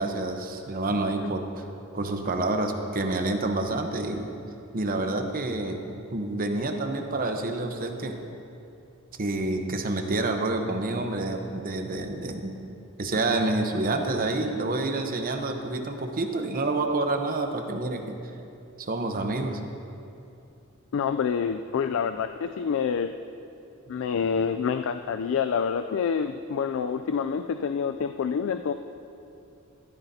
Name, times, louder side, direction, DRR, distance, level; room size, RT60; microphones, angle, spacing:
voice 1, 0.0-1.6 1.9-4.3 4.7-5.8 6.1-8.2 9.2-12.5 13.0-18.2 18.8-19.6, right 2 dB, 45° right, 5 dB, 0.9 m, -28 dB
voice 2, 20.9-23.1 23.9-28.7, left 6 dB, 65° left, 9 dB, 0.3 m, -27 dB
14.0 x 13.0 x 2.8 m, 2.7 s
head